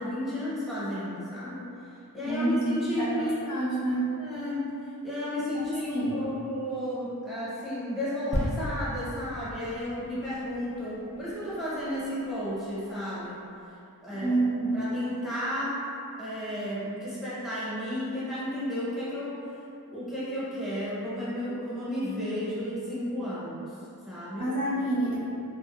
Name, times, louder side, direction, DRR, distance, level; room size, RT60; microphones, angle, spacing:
voice 1, 0.0-3.6 4.2-4.7 5.0-13.4 14.0-14.4 14.7-15.8 16.2-19.3 19.9-23.8 24.1-24.5, equal, ahead, -10 dB, 0.9 m, -33 dB
voice 2, 2.3-2.7 3.0-4.1 5.5-6.2 14.2-14.8 24.4-25.2, right 2 dB, 70° left, -9 dB, 0.7 m, -28 dB
sound 1, 8.3-11.9 12.5-12.6, equal, 20° left, 0.4 m, -35 dB
2.7 x 2.5 x 2.2 m, 2.6 s
wide cardioid pair, 70°, 37 cm